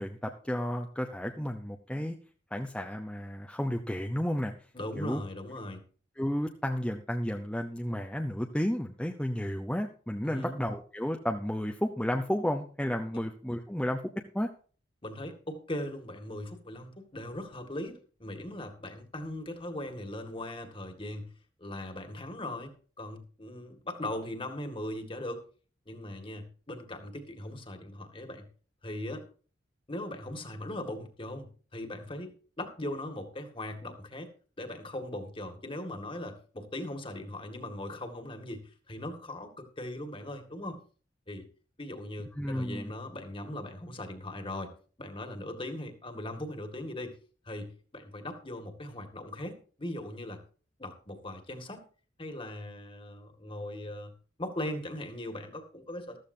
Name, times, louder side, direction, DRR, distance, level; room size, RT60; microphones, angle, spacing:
voice 1, 0.0-2.2 2.5-4.5 5.0-5.2 6.2-14.0 14.3-14.5 42.4-42.9, equal, 5° left, 2 dB, 0.8 m, -32 dB
voice 2, 4.7-5.8 10.2-10.6 13.1-13.3 15.0-21.3 21.6-25.4 25.9-28.5 28.8-29.2 29.9-34.3 34.6-40.8 41.3-41.4 41.8-44.7 45.0-47.1 47.5-50.4 50.8-51.8 52.2-54.1 54.4-56.2, left 1 dB, 30° left, 6 dB, 2.1 m, -39 dB
14.5 x 14.0 x 2.8 m, 0.40 s
head